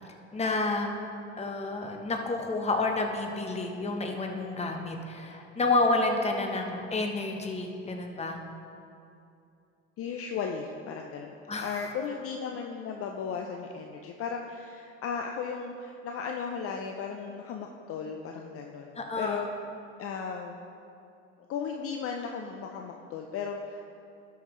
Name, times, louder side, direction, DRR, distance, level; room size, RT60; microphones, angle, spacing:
voice 1, 0.3-0.9 1.4-8.4 11.5-11.7 18.9-19.5, left 2 dB, 20° left, 3 dB, 1.1 m, -29 dB
voice 2, 10.0-11.3 11.6-19.5 20.0-20.6 21.5-23.8, left 6 dB, 45° left, 3 dB, 0.6 m, -36 dB
12.5 x 5.8 x 3.2 m, 2.6 s
supercardioid pair, 85°, 32 cm